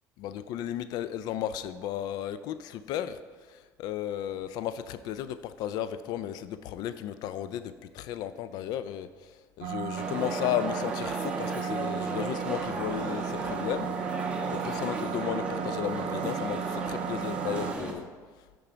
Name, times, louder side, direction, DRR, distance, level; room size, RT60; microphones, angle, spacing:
voice 1, 0.2-3.2 3.5-9.1 9.6-14.0 14.5-18.1, left 10 dB, 70° left, 13 dB, 0.3 m, -34 dB
sound 1, 9.6-17.7, right 9 dB, 80° right, 0.5 m, -35 dB
sound 2, 10.0-17.9, right 2 dB, 15° right, 1.0 m, -35 dB
8.8 x 3.7 x 5.0 m, 1.5 s
cardioid pair, 120°, 7 cm